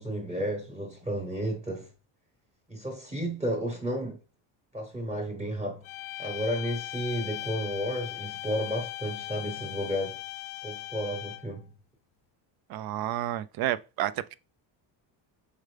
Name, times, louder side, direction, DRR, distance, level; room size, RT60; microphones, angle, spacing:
voice 1, 0.0-1.9 2.7-4.2 4.7-5.8 6.2-10.2 10.6-11.7, equal, 15° right, 1.1 m, -32 dB
sound 1, 5.8-11.6, left 19 dB, 45° left, 0.5 m, -39 dB
voice 2, 12.7-14.3, right 13 dB, 55° right, 0.5 m, -30 dB
6.5 x 4.9 x 3.3 m
cardioid pair, 175°, 46 cm